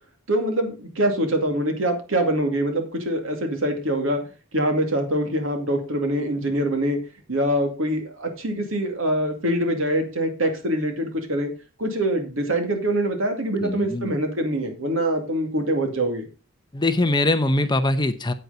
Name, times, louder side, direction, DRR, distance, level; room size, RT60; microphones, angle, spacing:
voice 1, 0.3-4.2 4.5-7.0 7.3-11.5 11.8-16.3, right 1 dB, 70° right, 4 dB, 2.3 m, -24 dB
voice 2, 13.6-14.1 16.7-18.3, left 2 dB, 20° left, 10 dB, 0.8 m, -22 dB
9.0 x 8.3 x 4.0 m, 0.33 s
head